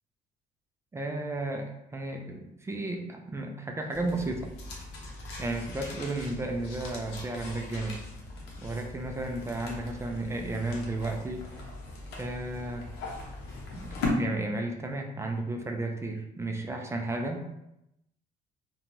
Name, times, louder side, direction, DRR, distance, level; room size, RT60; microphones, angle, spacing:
voice 1, 0.9-4.5 5.4-8.0 8.6-11.5 12.2-12.9 13.7-17.4, right 2 dB, 15° right, 2 dB, 0.3 m, -33 dB
sound 1, 3.9-14.1, left 2 dB, 80° left, 0.7 m, -39 dB
2.9 x 2.2 x 2.6 m, 0.84 s
cardioid pair, 110°, 17 cm